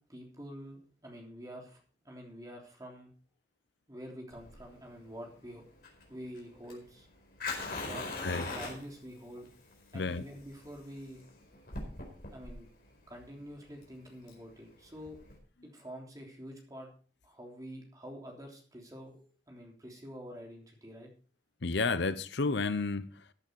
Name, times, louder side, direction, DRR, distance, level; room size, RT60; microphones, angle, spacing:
voice 1, 0.1-1.8 2.0-3.1 3.9-5.6 6.1-7.1 7.9-8.2 8.5-9.5 9.9-11.2 12.3-12.7 13.1-15.2 15.6-16.9 17.2-21.1, equal, 20° right, 3.3 m, -47 dB
Fire, 4.3-15.4, left 3 dB, 50° left, 4.6 m, -43 dB
voice 2, 21.6-23.1, left 3 dB, 65° left, 0.7 m, -31 dB
15.0 x 8.4 x 4.6 m
head